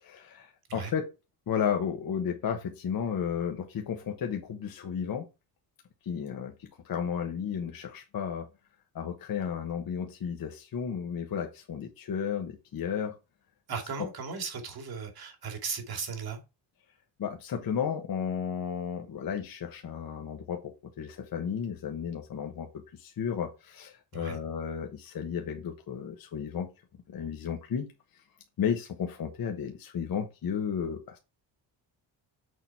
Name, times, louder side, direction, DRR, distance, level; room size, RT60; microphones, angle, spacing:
voice 1, 0.0-1.1 1.5-5.2 6.0-8.5 8.9-13.1 14.0-14.1 17.2-22.7 23.0-26.7 27.1-27.9 28.6-31.2, left 7 dB, 50° left, 1.2 m, -33 dB
voice 2, 13.7-16.4 24.1-24.4, right 5 dB, 55° right, 2.4 m, -36 dB
6.7 x 4.0 x 4.5 m
cardioid pair, 100°, 44 cm